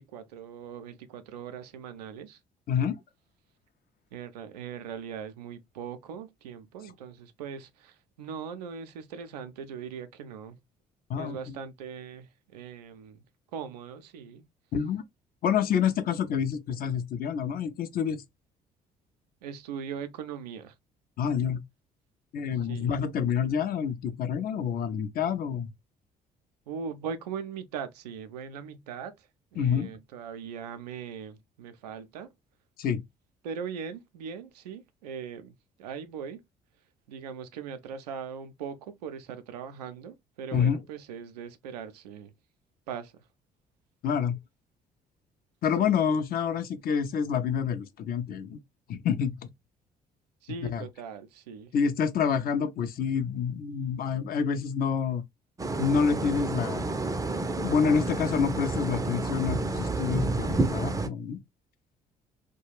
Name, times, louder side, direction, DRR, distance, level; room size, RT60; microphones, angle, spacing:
voice 1, 0.0-2.4 4.1-10.6 11.2-13.2 13.5-14.5 19.4-20.8 22.5-22.9 26.7-32.3 33.4-36.4 37.1-42.3 42.9-43.1 45.8-46.0 50.4-51.7, right 7 dB, 80° right, 0.4 m, -40 dB
voice 2, 14.7-15.0 15.4-18.2 21.2-21.6 22.3-25.7 29.6-29.9 32.8-33.0 40.5-40.8 44.0-44.4 45.6-48.6 48.9-49.4 50.7-50.8 51.7-55.2 55.8-57.0 57.6-61.4, left 7 dB, 45° left, 0.5 m, -27 dB
sound 1, 55.6-61.1, right 2 dB, 15° right, 0.5 m, -30 dB
2.3 x 2.1 x 3.0 m
figure-of-eight pair, 50°, 20 cm